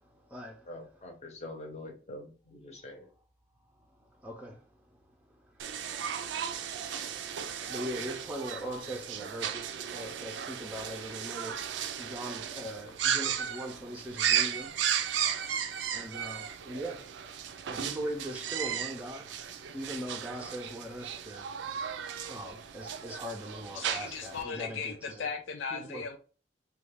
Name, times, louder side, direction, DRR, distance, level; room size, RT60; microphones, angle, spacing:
voice 1, 0.6-3.1, left 1 dB, 35° left, 0.8 m, -44 dB
voice 2, 4.2-4.6 7.7-11.6 12.0-14.7 15.9-17.0 17.7-19.3 19.7-21.5 22.3-25.3 25.7-26.1, equal, 10° right, 0.5 m, -40 dB
sound 1, 5.6-24.4, right 9 dB, 75° right, 0.4 m, -35 dB
voice 3, 23.7-26.2, left 5 dB, 85° left, 0.4 m, -37 dB
3.1 x 2.2 x 3.4 m
head